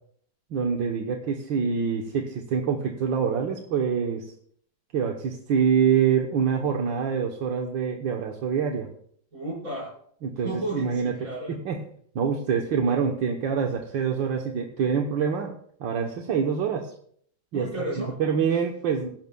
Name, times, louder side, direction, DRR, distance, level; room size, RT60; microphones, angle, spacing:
voice 1, 0.5-4.3 4.9-8.9 10.2-11.1 11.5-11.9 12.2-16.9 17.5-17.7 18.0-19.1, right 6 dB, 80° right, 2 dB, 1.8 m, -25 dB
voice 2, 9.3-9.9 10.4-11.6 17.5-18.6, right 1 dB, 45° right, -4 dB, 6.0 m, -34 dB
20.5 x 11.0 x 2.3 m, 0.62 s
omnidirectional pair, 2.0 m